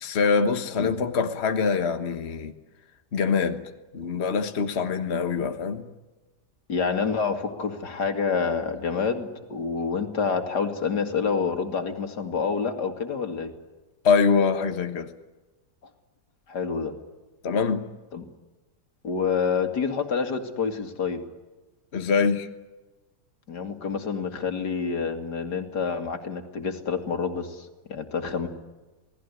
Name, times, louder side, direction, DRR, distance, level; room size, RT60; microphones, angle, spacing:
voice 1, 0.0-2.5 3.1-3.6 3.9-5.9 14.0-15.1 17.4-17.9 21.9-22.5, left 5 dB, 45° left, 7 dB, 1.5 m, -24 dB
voice 2, 6.7-13.5 16.5-16.9 18.1-18.2 19.0-21.2 23.5-28.5, left 5 dB, 80° left, 6 dB, 2.8 m, -28 dB
28.0 x 18.5 x 9.8 m, 1.2 s
omnidirectional pair, 1.8 m